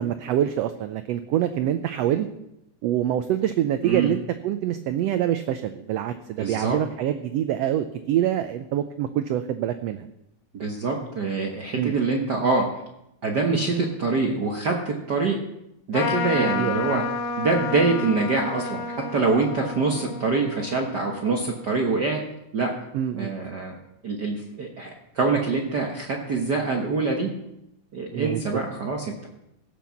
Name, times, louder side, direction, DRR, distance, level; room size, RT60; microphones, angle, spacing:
voice 1, 0.0-2.3 2.8-10.0 11.7-11.9 16.4-16.8 22.9-23.5 28.1-28.6, right 11 dB, 85° right, 10 dB, 1.4 m, -25 dB
voice 2, 6.4-6.8 10.5-12.6 13.2-15.4 15.9-17.0 17.4-22.2 22.5-22.7 23.1-23.7 24.0-27.3 27.9-29.3, right 3 dB, 60° right, 1 dB, 1.1 m, -25 dB
Trumpet, 15.9-21.8, left 4 dB, 70° left, 2.4 m, -31 dB
16.5 x 6.0 x 7.1 m, 0.84 s
omnidirectional pair, 3.6 m